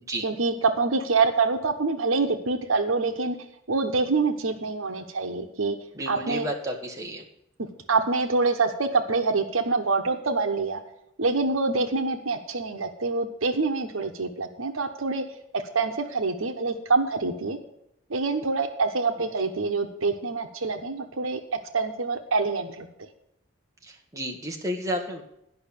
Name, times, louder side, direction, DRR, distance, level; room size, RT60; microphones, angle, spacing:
voice 1, 0.2-3.4 3.7-5.7 6.1-6.5 7.9-10.8 11.2-15.2 15.5-17.6 18.1-21.4 21.7-22.9, right 3 dB, 80° right, 6 dB, 1.1 m, -25 dB
voice 2, 5.9-7.2 23.9-25.2, equal, 15° right, 1 dB, 1.3 m, -32 dB
11.0 x 5.8 x 8.5 m, 0.77 s
head